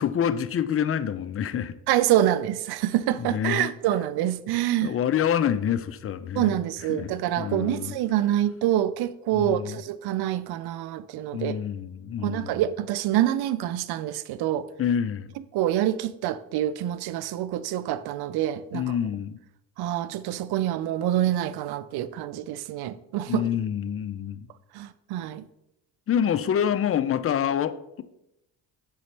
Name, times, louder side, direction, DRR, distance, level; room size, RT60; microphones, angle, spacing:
voice 1, 0.0-1.7 3.2-3.7 4.8-6.5 6.9-8.0 9.3-9.8 11.3-12.6 14.8-15.3 18.7-19.4 23.3-24.5 26.1-28.0, left 9 dB, 30° left, 0.4 m, -27 dB
voice 2, 1.9-5.0 6.4-11.6 12.2-14.7 15.5-18.9 19.8-23.5 24.7-25.4, right 12 dB, 55° right, 0.5 m, -26 dB
7.6 x 3.9 x 3.3 m
supercardioid pair, 60°, 48 cm